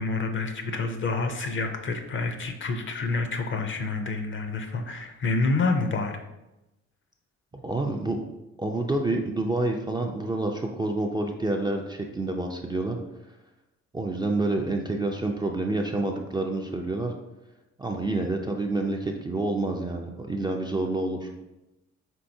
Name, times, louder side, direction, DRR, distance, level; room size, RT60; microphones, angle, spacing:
voice 1, 0.0-6.2, left 3 dB, 40° left, 6 dB, 0.5 m, -28 dB
voice 2, 7.5-8.2 8.6-13.0 13.9-17.2 17.8-21.3, right 2 dB, 15° right, 1 dB, 0.3 m, -28 dB
4.5 x 3.4 x 2.6 m, 0.96 s
cardioid pair, 90°, 30 cm